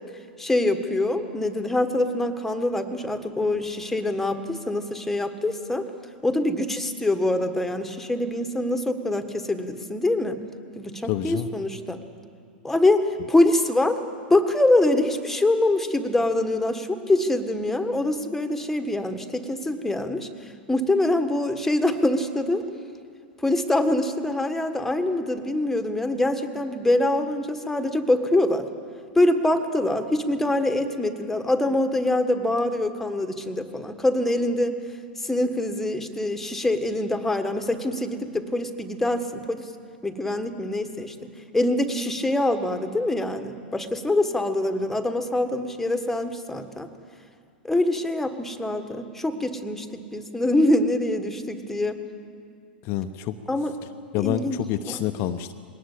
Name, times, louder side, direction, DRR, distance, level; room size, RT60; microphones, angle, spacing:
voice 1, 0.4-5.9 6.2-10.4 10.7-12.0 12.6-14.0 14.3-20.3 20.7-22.7 23.4-28.7 29.1-34.8 35.2-39.7 40.0-41.1 41.5-46.9 47.6-52.0 53.5-53.8 54.2-55.0, left 1 dB, 5° left, 8 dB, 1.6 m, -24 dB
voice 2, 11.1-11.5 52.8-53.4 54.1-55.5, left 12 dB, 45° left, 8 dB, 0.8 m, -27 dB
21.5 x 18.5 x 8.4 m, 2.4 s
figure-of-eight pair, 95°, 5 cm